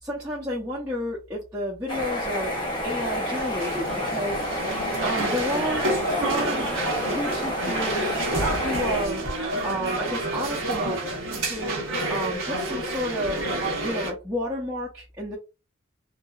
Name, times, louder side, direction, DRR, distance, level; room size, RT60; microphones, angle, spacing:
voice 1, 0.0-2.5 2.8-4.4 5.0-6.7 7.1-8.2 8.5-9.2 9.6-11.0 11.4-11.8 12.1-13.5 13.8-15.4, equal, 10° right, -7 dB, 0.7 m, -31 dB
sound 1, 1.9-9.1, left 1 dB, 20° left, 0.8 m, -29 dB
sound 2, 2.5-14.1, right 1 dB, 75° right, 1.1 m, -29 dB
3.0 x 2.9 x 2.4 m, 0.29 s
head